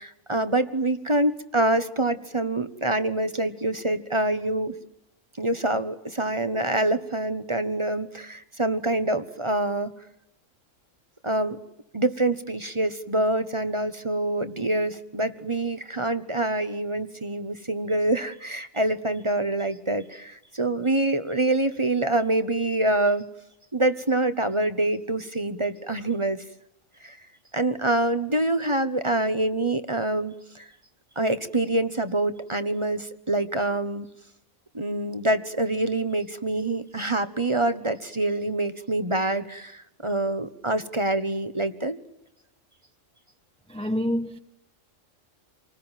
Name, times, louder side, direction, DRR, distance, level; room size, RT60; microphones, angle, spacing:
voice 1, 0.0-4.7 5.4-9.9 11.2-11.6 11.9-23.3 23.7-26.4 27.0-27.2 27.5-30.7 31.2-34.1 34.7-42.0, right 2 dB, 25° right, 1.3 m, -26 dB
voice 2, 43.7-44.4, equal, 5° left, 0.8 m, -27 dB
27.0 x 20.0 x 9.1 m
omnidirectional pair, 1.4 m